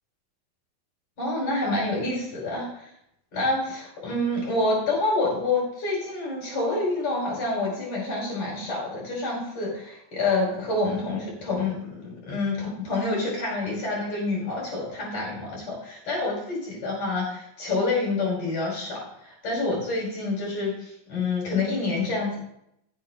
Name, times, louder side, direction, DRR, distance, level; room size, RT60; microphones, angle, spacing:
voice 1, 1.2-2.9 3.3-22.4, left 2 dB, 35° left, -5 dB, 5.7 m, -27 dB
17.0 x 8.1 x 3.9 m, 0.77 s
omnidirectional pair, 4.1 m